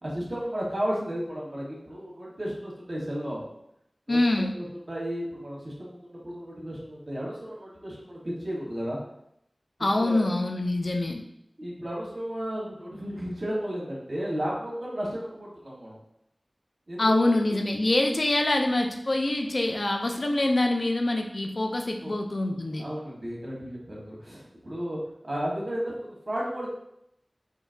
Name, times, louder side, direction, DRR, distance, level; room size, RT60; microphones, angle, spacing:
voice 1, 0.0-3.5 4.1-4.2 4.5-9.0 10.0-10.3 11.6-16.0 16.9-17.1 22.0-22.1 22.7-26.7, equal, 65° right, -5 dB, 1.3 m, -33 dB
voice 2, 4.1-4.5 9.8-11.2 17.0-22.9, left 2 dB, 70° left, 3 dB, 0.5 m, -25 dB
5.1 x 2.8 x 2.6 m, 0.78 s
wide cardioid pair, 45°, 0 cm